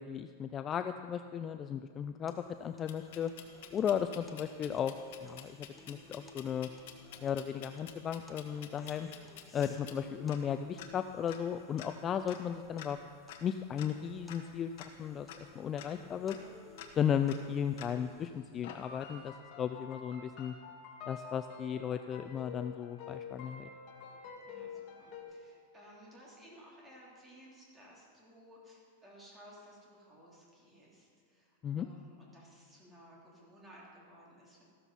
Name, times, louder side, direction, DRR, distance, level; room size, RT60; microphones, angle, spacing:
voice 1, 0.0-3.3 3.7-4.9 5.2-6.7 7.2-9.1 9.5-13.0 13.4-15.3 15.5-16.4 16.9-20.5 21.1-23.7 31.6-31.9, left 8 dB, 20° left, 9 dB, 0.3 m, -35 dB
sound 1, 2.3-18.3, left 3 dB, 5° left, 1.0 m, -58 dB
sound 2, 2.9-18.2 18.6-19.3, left 8 dB, 60° left, 1.4 m, -52 dB
sound 3, 18.7-25.2, left 5 dB, 40° left, 2.2 m, -48 dB
voice 2, 24.4-34.6, equal, 10° right, -5 dB, 3.2 m, -57 dB
14.5 x 13.0 x 4.1 m, 2.1 s
supercardioid pair, 150°, 0 cm